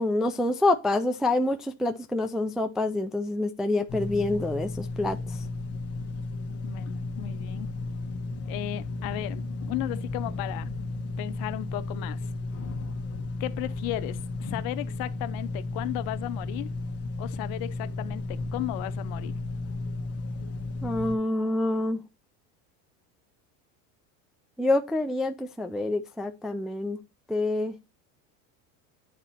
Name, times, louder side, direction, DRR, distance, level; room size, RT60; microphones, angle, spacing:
voice 1, 0.0-5.2 20.8-22.0 24.6-27.0 27.3-27.8, left 2 dB, ahead, 0.3 m, -27 dB
sound 1, 3.9-21.2, left 3 dB, 35° left, 1.1 m, -34 dB
voice 2, 6.6-7.7 8.5-10.7 11.2-12.2 13.4-16.7 17.2-19.3, left 16 dB, 60° left, 0.8 m, -35 dB
9.0 x 4.2 x 4.1 m
supercardioid pair, 115°, 40 cm